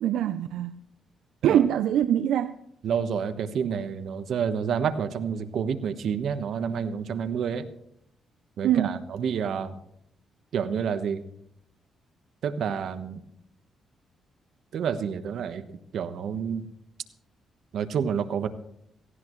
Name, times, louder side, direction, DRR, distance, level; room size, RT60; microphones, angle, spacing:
voice 1, 0.0-0.8 1.4-2.6 8.6-9.0, right 10 dB, 85° right, 0.5 m, -23 dB
voice 2, 2.8-7.7 8.6-9.7 10.5-11.2 12.4-13.2 14.7-15.6 15.9-16.7 17.7-18.5, right 7 dB, 70° right, 1.2 m, -29 dB
17.5 x 15.5 x 3.1 m
cardioid pair, 110°, 0 cm